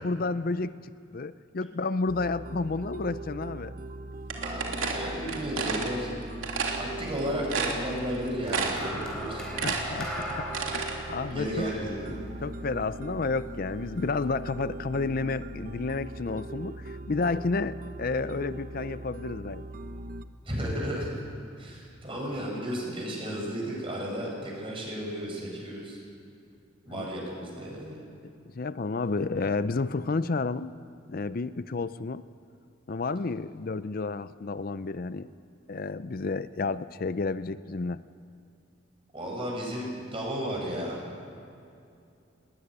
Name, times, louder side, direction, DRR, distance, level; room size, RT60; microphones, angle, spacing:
voice 1, 0.0-3.7 9.6-10.5 10.7-11.7 12.4-19.6 26.9-27.1 28.2-30.7 31.1-32.2 32.9-35.3 35.7-38.0, left 3 dB, 45° left, 14 dB, 0.5 m, -31 dB
sound 1, 2.1-20.2, right 2 dB, 45° right, 0.9 m, -40 dB
sound 2, 4.3-5.9 6.4-6.8 7.2-7.3 7.5-8.2 8.5-8.9 9.3-10.9, right 5 dB, 90° right, 3.1 m, -30 dB
voice 2, 4.4-6.1 6.5-9.5 11.3-12.1 20.4-21.2 21.6-26.0 26.8-28.0 39.1-41.1, equal, 25° right, -2 dB, 6.7 m, -34 dB
sound 3, 8.5-12.9 13.8-14.1, equal, 5° left, 4.1 m, -38 dB
19.5 x 19.5 x 10.0 m, 2.5 s
head